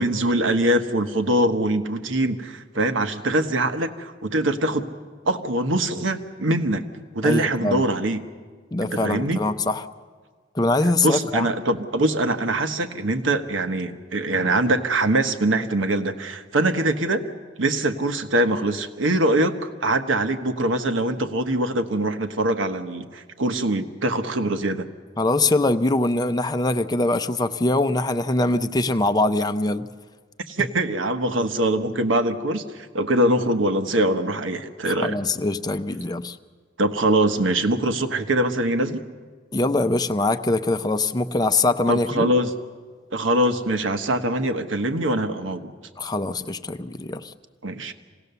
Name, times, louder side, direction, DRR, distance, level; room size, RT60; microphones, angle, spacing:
voice 1, 0.0-4.9 5.2-6.8 7.1-8.2 8.8-9.4 11.0-17.2 17.6-24.9 30.5-35.2 36.8-39.0 41.9-42.5 43.1-45.7 47.6-47.9, right 1 dB, 80° right, 8 dB, 1.2 m, -23 dB
voice 2, 7.2-7.8 8.7-9.9 10.5-11.5 25.2-29.9 30.6-30.7 34.9-36.4 39.5-42.3 46.0-47.3, left 2 dB, 20° left, 9 dB, 0.6 m, -23 dB
26.5 x 18.0 x 6.9 m, 1.5 s
head